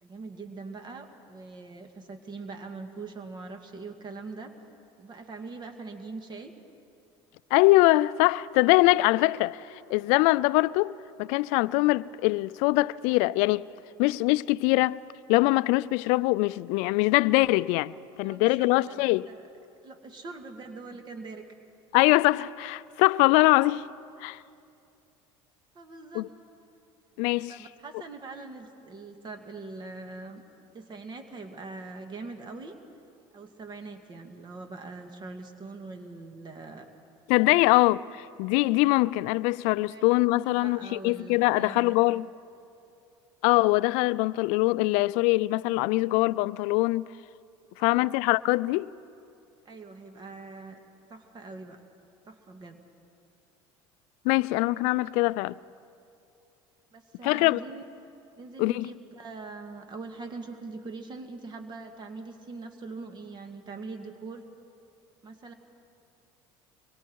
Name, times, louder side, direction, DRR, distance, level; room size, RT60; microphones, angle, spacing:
voice 1, 0.0-4.5 5.0-6.5 18.2-19.5 19.8-21.4 25.8-26.3 27.5-30.4 30.7-32.8 33.3-36.9 39.9-40.1 40.3-42.0 47.8-48.1 49.7-50.8 51.1-51.8 52.3-52.8 56.9-57.8 58.4-64.4 65.2-65.5, right 3 dB, 40° right, 1.9 m, -42 dB
voice 2, 7.5-9.6 9.9-13.6 14.0-15.0 15.3-19.3 21.9-23.8 24.2-24.4 26.1-26.3 27.2-27.5 37.3-42.2 43.4-47.1 47.8-48.9 54.2-55.5 57.2-57.6 58.6-58.9, left 21 dB, 75° left, 0.4 m, -23 dB
25.0 x 22.5 x 4.7 m
supercardioid pair, 90°, 12 cm